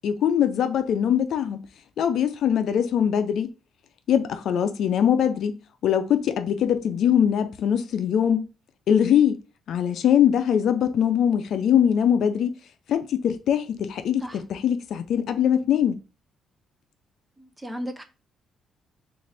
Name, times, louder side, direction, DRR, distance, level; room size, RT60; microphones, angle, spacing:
voice 1, 0.0-1.7 2.0-3.5 4.1-5.6 5.8-8.4 8.9-9.4 9.7-12.5 12.9-16.0, left 9 dB, 70° left, 0.5 m, -22 dB
voice 2, 17.4-18.0, equal, 10° right, 0.6 m, -35 dB
3.8 x 2.6 x 3.3 m
cardioid pair, 90°, 0 cm